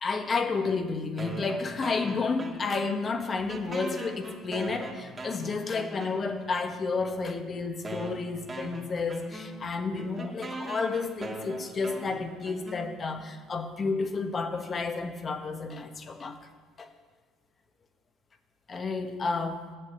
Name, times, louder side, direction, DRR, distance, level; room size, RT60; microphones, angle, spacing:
voice 1, 0.0-16.4 16.8-16.9 18.7-19.6, left 4 dB, 35° left, 7 dB, 1.1 m, -31 dB
sound 1, 1.2-3.0 3.3-6.5 7.3-7.4 7.8-13.2, right 2 dB, 30° right, 1.8 m, -41 dB
7.7 x 7.1 x 8.2 m, 1.5 s
supercardioid pair, 85°, 0 cm